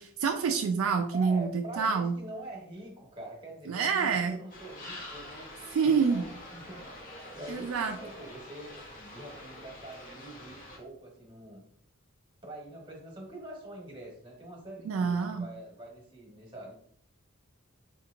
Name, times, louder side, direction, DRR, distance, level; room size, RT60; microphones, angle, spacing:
voice 1, 0.0-2.2 3.7-4.4 5.7-6.3 7.5-8.0 14.9-15.5, right 5 dB, 70° right, 5 dB, 0.3 m, -27 dB
voice 2, 1.1-5.5 5.8-6.8 7.3-11.6 12.4-16.7, right 1 dB, 20° right, -2 dB, 1.1 m, -45 dB
sound 1, 4.5-10.8, left 1 dB, 40° left, 0.8 m, -46 dB
4.3 x 2.9 x 2.4 m, 0.63 s
head